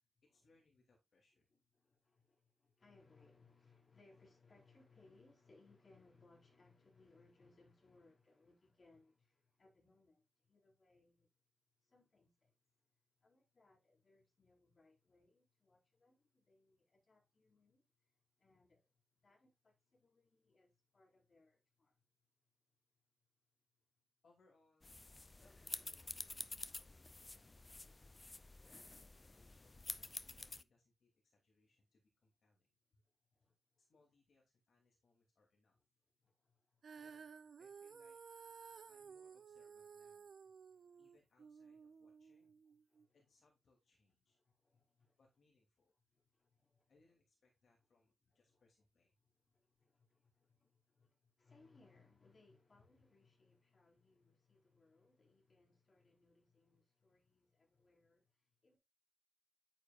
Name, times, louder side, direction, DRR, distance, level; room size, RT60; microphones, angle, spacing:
voice 1, 0.0-1.5 24.2-24.9 25.4-28.3 29.3-32.7 33.8-35.7 36.9-37.3 37.6-38.2 38.9-40.3 41.0-42.5 43.1-44.4 45.2-45.9 46.9-49.1, left 3 dB, 65° left, 2.8 m, -75 dB
voice 2, 1.5-11.3 11.8-12.6 13.2-22.1 33.0-33.8 36.2-36.9 38.7-38.9 40.6-41.0 42.4-42.5 42.9-43.2 44.3-45.2 46.1-47.0 48.3-48.6 49.2-58.8, left 3 dB, 35° left, 4.5 m, -70 dB
sound 1, 24.8-30.6, left 2 dB, 20° left, 0.4 m, -50 dB
Female singing, 36.8-43.1, right 6 dB, 60° right, 0.6 m, -56 dB
10.0 x 9.1 x 2.5 m
wide cardioid pair, 180°, 0 cm